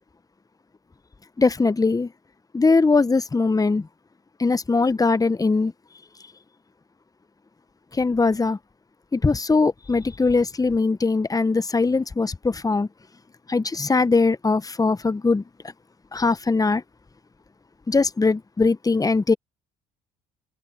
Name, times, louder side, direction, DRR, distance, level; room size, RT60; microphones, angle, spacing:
voice 1, 1.4-2.1 2.5-3.9 4.4-5.7 7.9-8.6 9.1-12.9 13.5-15.4 16.1-16.8 17.9-19.3, left 3 dB, 20° left, 1.1 m, -21 dB
hypercardioid pair, 55°, 20 cm